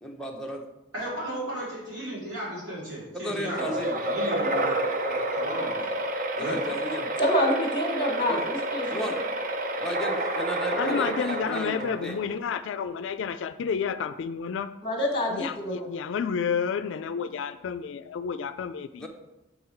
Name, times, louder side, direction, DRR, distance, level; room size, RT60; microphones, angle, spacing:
voice 1, 0.0-0.6 3.1-3.9 6.3-7.1 8.3-8.4 8.9-9.2 9.8-12.1 19.0-19.1, equal, 5° left, -1 dB, 0.7 m, -34 dB
voice 2, 0.9-4.8 5.1-5.8 6.4-6.6, right 1 dB, 75° right, -7 dB, 2.8 m, -35 dB
sound 1, 3.6-12.3, right 1 dB, 45° right, 0.6 m, -29 dB
voice 3, 7.2-9.1 10.7-11.0 14.8-15.8, equal, 25° left, 1 dB, 1.4 m, -27 dB
voice 4, 10.7-14.7 15.3-19.1, left 6 dB, 75° left, 11 dB, 0.3 m, -30 dB
6.9 x 5.5 x 4.4 m, 0.97 s
head